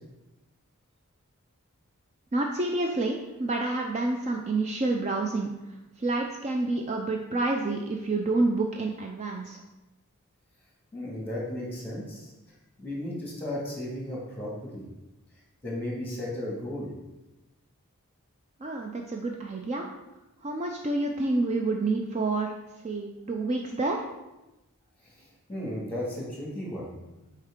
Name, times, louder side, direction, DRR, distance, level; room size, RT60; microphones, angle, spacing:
voice 1, 2.3-5.5 6.0-9.6 18.6-19.9 20.4-22.5 22.8-24.0, right 2 dB, 30° right, 2 dB, 0.4 m, -28 dB
voice 2, 10.9-14.8 15.6-16.9 25.0-26.9, left 1 dB, 10° left, -4 dB, 2.0 m, -35 dB
7.8 x 4.6 x 3.7 m, 1.0 s
head